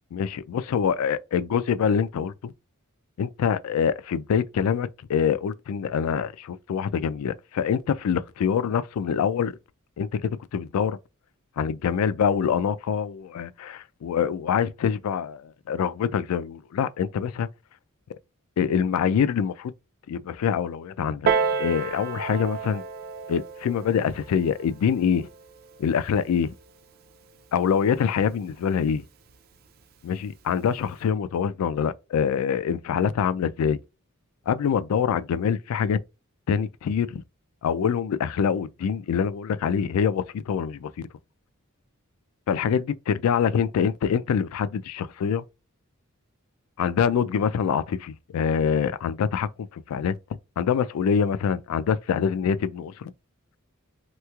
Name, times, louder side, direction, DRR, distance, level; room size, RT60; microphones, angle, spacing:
voice 1, 0.1-2.5 3.2-9.5 10.0-11.0 11.6-17.5 18.6-19.7 20.1-21.3 21.6-22.8 23.3-25.3 25.8-26.5 27.5-29.0 30.0-33.8 34.5-36.0 36.5-37.2 37.6-40.9 42.5-45.4 46.8-50.1 50.6-53.0, left 7 dB, 80° left, 0.3 m, -25 dB
Piano, 21.3-26.4 27.3-27.4, right 5 dB, 45° right, 0.4 m, -30 dB
3.2 x 3.0 x 2.3 m
head